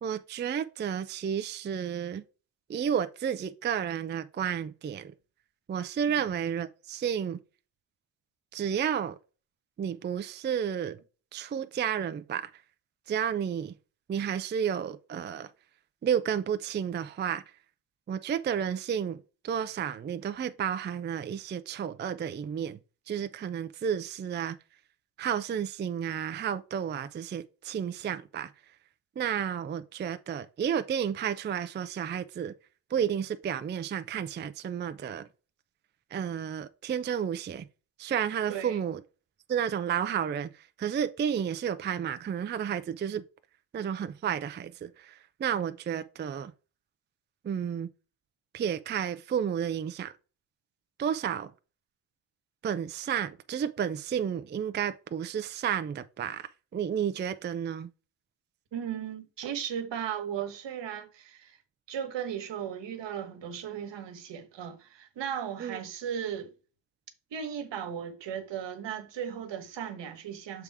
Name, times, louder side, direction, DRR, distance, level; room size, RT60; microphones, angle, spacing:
voice 1, 0.0-2.2 2.7-5.1 5.7-7.4 8.5-9.2 9.8-11.0 11.3-12.5 13.1-13.8 14.1-15.5 16.0-17.4 18.1-22.8 23.1-24.6 25.2-28.5 29.2-32.5 32.9-35.3 36.1-37.7 38.0-39.0 39.5-40.5 40.8-43.2 43.7-46.5 47.4-47.9 48.5-50.1 51.0-51.5 52.6-57.9 65.6-65.8, right 8 dB, 25° right, 0.3 m, -31 dB
voice 2, 38.5-38.8 58.7-61.6 61.9-66.5 67.3-70.6, right 8 dB, 75° right, 1.3 m, -36 dB
6.9 x 3.6 x 4.7 m
wide cardioid pair, 145°, 44 cm